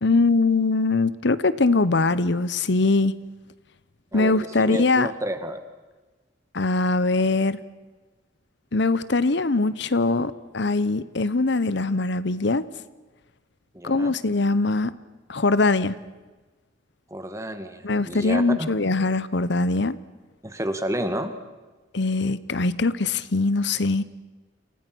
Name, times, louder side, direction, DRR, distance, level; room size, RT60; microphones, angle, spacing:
voice 1, 0.0-3.1 4.1-5.1 6.5-7.6 8.7-12.7 13.8-14.9 15.3-16.0 17.8-20.0 21.9-24.0, left 3 dB, 65° left, 16 dB, 0.9 m, -22 dB
voice 2, 4.1-5.6 13.7-14.1 17.1-18.7 20.4-21.3, right 1 dB, 15° right, 8 dB, 2.2 m, -30 dB
29.5 x 28.5 x 6.2 m, 1.2 s
head